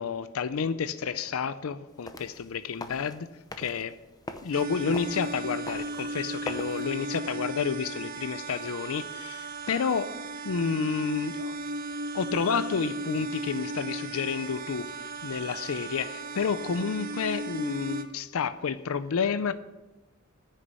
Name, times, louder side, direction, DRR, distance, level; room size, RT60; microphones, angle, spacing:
voice 1, 0.0-3.3 3.6-3.9 4.4-10.1 10.4-11.6 12.1-14.9 15.2-19.5, left 6 dB, 70° left, 12 dB, 0.5 m, -30 dB
sound 1, 1.9-6.9, left 2 dB, 15° left, 0.7 m, -44 dB
sound 2, 4.5-18.0, right 2 dB, 40° right, 0.9 m, -36 dB
9.4 x 6.6 x 8.1 m, 1.1 s
head